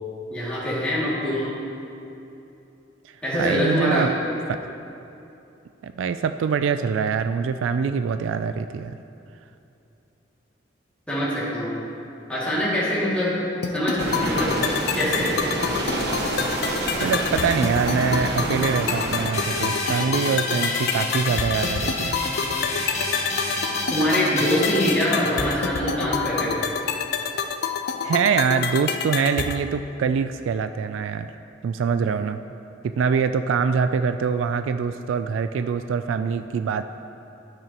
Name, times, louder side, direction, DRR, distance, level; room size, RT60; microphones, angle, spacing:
voice 1, 0.3-1.6 3.2-4.1 11.1-11.8 12.3-13.4 13.7-14.6 14.9-15.3 23.9-26.6, equal, 5° left, -10 dB, 2.3 m, -24 dB
voice 2, 3.4-4.1 4.5-4.6 5.8-9.0 17.0-22.2 28.0-31.3 31.6-32.4 32.8-36.8, right 6 dB, 90° right, 10 dB, 0.3 m, -24 dB
sound 1, 13.6-29.6, left 6 dB, 60° left, 0.5 m, -28 dB
sound 2, 14.0-19.3, right 1 dB, 60° right, 1.2 m, -27 dB
sound 3, 19.3-25.7, left 2 dB, 40° left, 1.6 m, -29 dB
12.5 x 8.9 x 2.9 m, 2.8 s
head